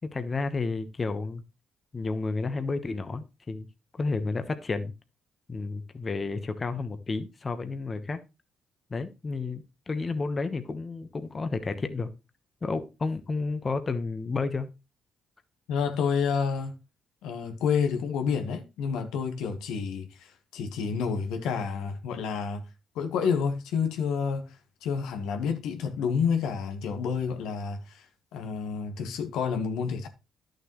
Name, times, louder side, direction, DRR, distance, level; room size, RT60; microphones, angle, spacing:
voice 1, 0.0-1.4 1.9-3.7 3.9-4.9 5.5-8.2 8.9-12.1 12.6-14.7, left 3 dB, 30° left, 1.1 m, -31 dB
voice 2, 15.7-16.8 17.2-22.6 22.9-28.0 28.3-30.1, left 6 dB, 90° left, 1.3 m, -29 dB
11.0 x 6.7 x 3.1 m
cardioid pair, 90°, 0 cm